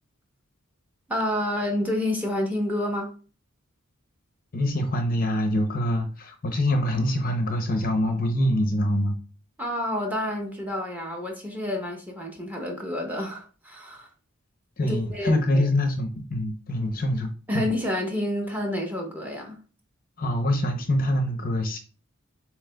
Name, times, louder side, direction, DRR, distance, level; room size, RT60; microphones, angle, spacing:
voice 1, 1.1-3.1 9.6-14.1 14.8-15.6 17.5-19.6, left 1 dB, 10° right, 0.9 m, -29 dB
voice 2, 4.5-9.2 14.8-17.7 20.2-21.8, left 1 dB, 45° left, 0.6 m, -25 dB
7.3 x 3.0 x 2.2 m
head